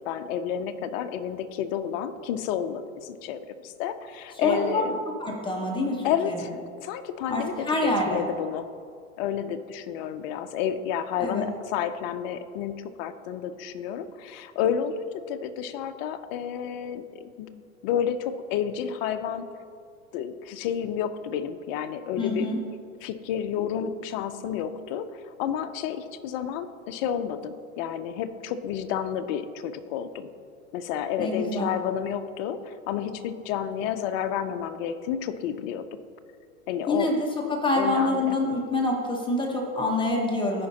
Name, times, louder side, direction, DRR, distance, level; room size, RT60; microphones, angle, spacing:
voice 1, 0.0-5.0 6.0-8.7 9.2-19.5 20.1-22.5 23.0-30.3 30.7-36.0 36.7-37.1 37.7-38.4, left 8 dB, 45° left, 10 dB, 0.6 m, -30 dB
voice 2, 4.4-4.8 5.2-6.4 7.3-8.2 11.2-11.5 22.2-22.6 31.2-31.7 36.9-37.2 37.5-40.7, left 2 dB, 10° left, 0 dB, 1.0 m, -26 dB
14.5 x 5.2 x 2.8 m, 2.3 s
hypercardioid pair, 120°, 43 cm